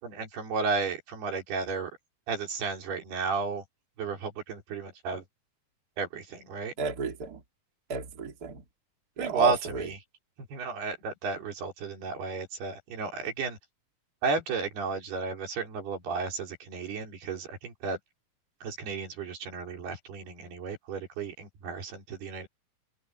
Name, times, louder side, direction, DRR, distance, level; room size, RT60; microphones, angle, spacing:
voice 1, 0.0-1.9 2.3-3.6 4.0-5.2 6.0-6.7 9.2-10.0 10.5-13.6 14.2-18.0 18.6-22.5, right 4 dB, 85° right, 6.5 m, -33 dB
voice 2, 6.8-7.4 7.9-8.6 9.2-9.8, right 5 dB, 25° right, 3.0 m, -32 dB
omnidirectional pair, 4.4 m